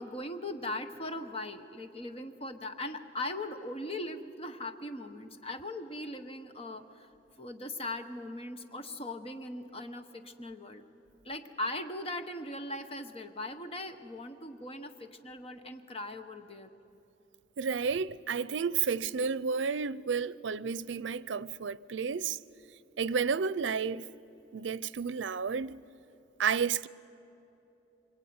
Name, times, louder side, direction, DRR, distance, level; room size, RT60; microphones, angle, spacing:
voice 1, 0.0-7.1 7.4-10.8 11.2-16.7, left 1 dB, 30° left, 1.1 m, -39 dB
voice 2, 17.6-22.4 23.0-24.1 24.5-25.8 26.4-26.9, right 6 dB, 85° right, 0.5 m, -31 dB
25.5 x 24.0 x 9.5 m
head